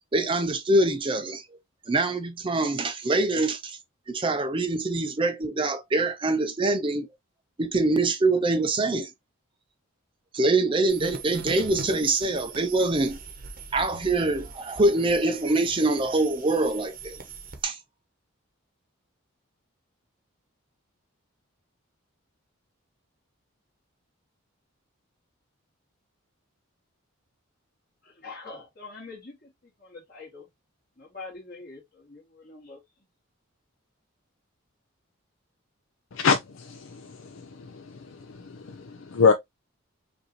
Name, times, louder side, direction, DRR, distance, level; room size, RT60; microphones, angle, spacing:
voice 1, 0.1-1.6 1.9-3.8 4.1-7.1 7.6-9.1 10.3-13.2 13.7-17.2 17.6-17.8, right 2 dB, 25° right, 0.4 m, -24 dB
sound 1, 10.9-17.6, right 4 dB, 40° right, 0.9 m, -40 dB
voice 2, 28.0-29.5 29.8-30.5 31.0-32.8, left 3 dB, 45° left, 2.1 m, -44 dB
voice 3, 36.1-38.0 38.3-39.3, left 5 dB, 60° left, 0.5 m, -25 dB
5.2 x 2.7 x 2.9 m
head